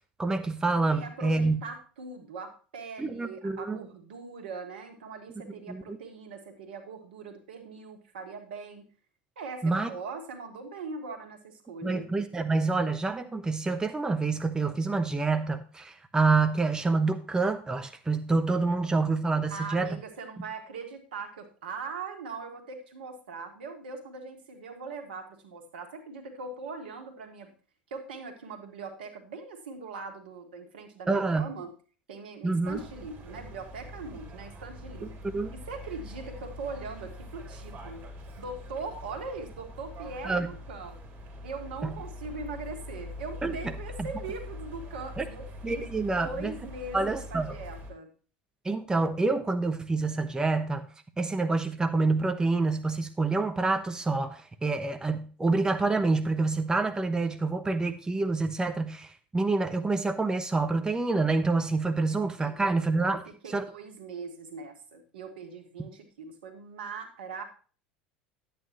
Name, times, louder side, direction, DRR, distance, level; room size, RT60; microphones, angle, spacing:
voice 1, 0.2-1.6 3.0-3.8 5.7-6.0 9.6-9.9 11.8-19.9 31.1-31.5 32.4-32.8 35.3-35.5 40.2-40.5 41.8-41.9 43.4-43.7 44.0-44.1 45.2-45.3 45.6-46.5 46.9-47.6 48.6-50.9 51.2-63.2 63.5-63.6 65.8-65.9, right 3 dB, 15° right, 8 dB, 0.9 m, -27 dB
voice 2, 0.9-8.9 9.4-12.1 19.5-27.5 27.9-31.7 32.1-35.1 35.5-38.0 38.4-41.0 41.4-48.1 62.4-62.7 63.1-67.4, right 4 dB, 75° right, 5 dB, 1.7 m, -41 dB
sound 1, 32.6-47.9, left 1 dB, 40° right, 3.5 m, -43 dB
11.0 x 8.5 x 3.0 m, 0.38 s
hypercardioid pair, 80°, 5 cm